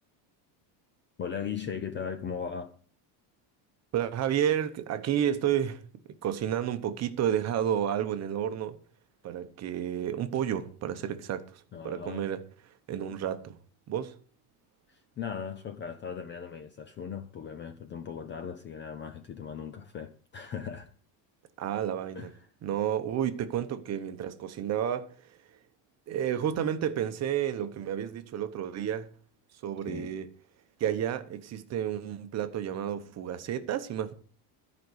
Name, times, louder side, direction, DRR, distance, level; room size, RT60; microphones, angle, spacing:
voice 1, 1.2-2.7 11.7-12.3 14.9-20.9 22.2-22.3 29.9-30.1, left 7 dB, 25° left, 0.5 m, -38 dB
voice 2, 3.9-5.8 6.2-8.8 9.2-12.4 12.9-13.6 13.9-14.2 21.6-22.3 22.6-25.6 26.1-29.1 29.6-30.3 30.8-34.1, right 10 dB, 35° right, 0.9 m, -31 dB
13.0 x 5.3 x 8.1 m
cardioid pair, 170°, 49 cm